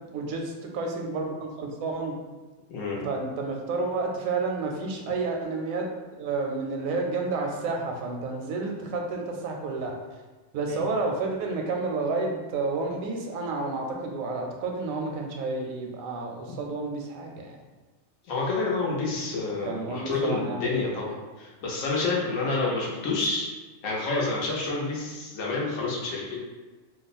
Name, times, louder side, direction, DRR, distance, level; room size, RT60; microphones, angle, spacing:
voice 1, 0.1-2.1 3.0-5.9 6.2-9.9 10.5-17.6 19.6-20.8, right 3 dB, 80° right, 1 dB, 1.0 m, -30 dB
voice 2, 2.7-3.1 18.3-23.5 23.8-26.4, left 3 dB, 75° left, -3 dB, 1.2 m, -28 dB
2.9 x 2.1 x 4.1 m, 1.2 s
omnidirectional pair, 1.4 m